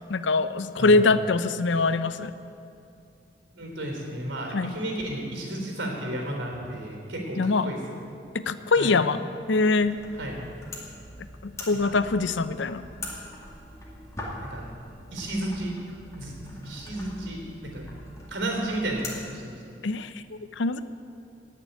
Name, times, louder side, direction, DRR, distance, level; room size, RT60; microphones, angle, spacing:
voice 1, 0.1-2.3 4.5-4.8 7.4-7.7 8.3-9.2 9.5-10.0 11.4-12.9 19.8-20.8, left 3 dB, 90° left, 13 dB, 0.6 m, -23 dB
voice 2, 3.5-7.8 8.8-8.9 10.2-10.4 11.8-11.9 14.5-14.7 15.1-15.8 16.1-17.8 18.3-19.6, right 1 dB, 85° right, 1 dB, 3.7 m, -33 dB
sound 1, 9.7-19.2, left 1 dB, 15° left, 2.3 m, -42 dB
18.0 x 6.8 x 9.1 m, 2.5 s
head